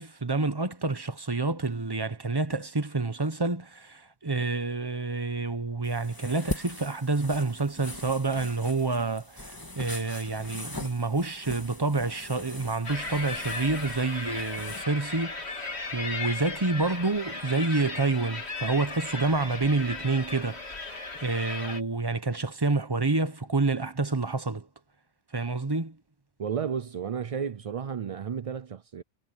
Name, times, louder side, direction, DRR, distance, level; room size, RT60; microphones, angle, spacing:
voice 1, 0.0-24.7 25.3-26.0, right 3 dB, 20° right, 1.0 m, -28 dB
sound 1, 5.8-14.8, left 1 dB, 20° left, 2.1 m, -41 dB
sound 2, 12.8-21.8, left 3 dB, 70° left, 3.0 m, -36 dB
voice 2, 26.4-29.0, right 7 dB, 50° right, 0.4 m, -32 dB
omnidirectional pair, 1.2 m